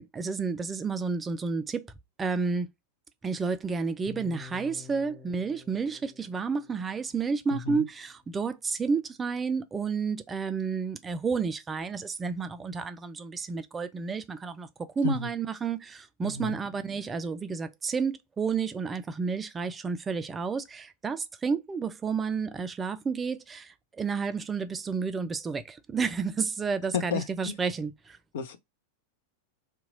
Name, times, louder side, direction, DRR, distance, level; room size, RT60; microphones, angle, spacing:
voice 1, 0.0-1.9 2.2-2.7 3.2-14.7 15.0-28.2, right 5 dB, 15° right, 0.3 m, -31 dB
sound 1, 4.1-8.1, left 7 dB, 10° left, 0.9 m, -50 dB
voice 2, 7.5-7.8 15.0-15.3 16.2-16.6 26.9-27.5 28.3-28.6, left 6 dB, 55° left, 0.5 m, -32 dB
2.9 x 2.2 x 3.7 m
figure-of-eight pair, 90°, 0 cm